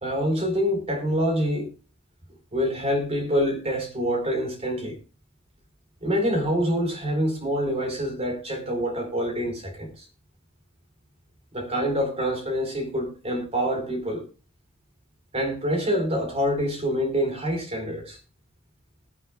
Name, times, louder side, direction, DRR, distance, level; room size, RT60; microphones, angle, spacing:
voice 1, 0.0-1.7 2.5-5.0 6.0-10.1 11.5-14.2 15.3-18.2, equal, 30° right, 4.4 m, -26 dB
21.5 x 9.1 x 2.4 m
head